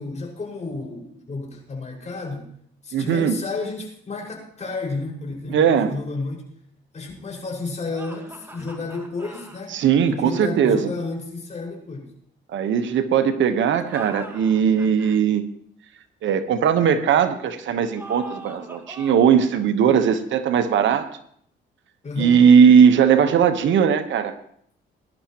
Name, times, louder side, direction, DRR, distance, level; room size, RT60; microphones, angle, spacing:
voice 1, 0.0-2.5 2.8-6.4 6.9-9.8 10.1-12.1 22.0-22.4, left 3 dB, 35° left, -2 dB, 5.5 m, -31 dB
voice 2, 2.9-3.4 5.5-5.9 9.7-10.9 12.5-15.4 16.2-21.1 22.2-24.3, right 7 dB, 75° right, 10 dB, 1.1 m, -18 dB
sound 1, 7.9-9.6 13.7-15.2 18.0-19.4, equal, 10° right, 1.9 m, -42 dB
20.5 x 11.5 x 3.0 m, 0.64 s
cardioid pair, 90°, 20 cm